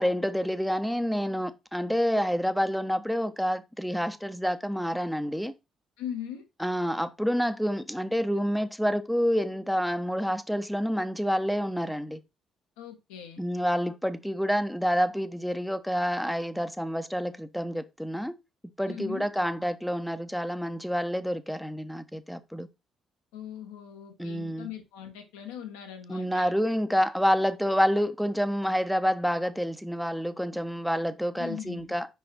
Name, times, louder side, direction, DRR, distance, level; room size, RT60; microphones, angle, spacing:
voice 1, 0.0-5.5 6.6-12.2 13.4-18.3 18.8-22.7 24.2-24.7 26.1-32.1, equal, ahead, 0.8 m, -28 dB
voice 2, 6.0-6.4 12.8-13.4 18.9-19.3 23.3-26.5 31.4-31.9, left 9 dB, 75° left, 1.2 m, -40 dB
5.2 x 4.6 x 4.1 m
figure-of-eight pair, 45°, 0 cm